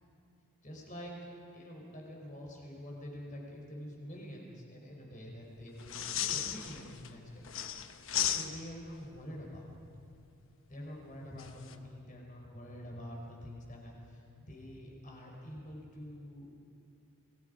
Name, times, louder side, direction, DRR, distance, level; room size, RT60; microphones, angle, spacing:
voice 1, 0.6-9.7 10.7-16.5, equal, 35° left, -1 dB, 4.9 m, -47 dB
sound 1, 5.8-7.1 7.4-8.9 11.4-11.7, left 10 dB, 60° left, 1.1 m, -35 dB
30.0 x 21.0 x 5.3 m, 2.6 s
head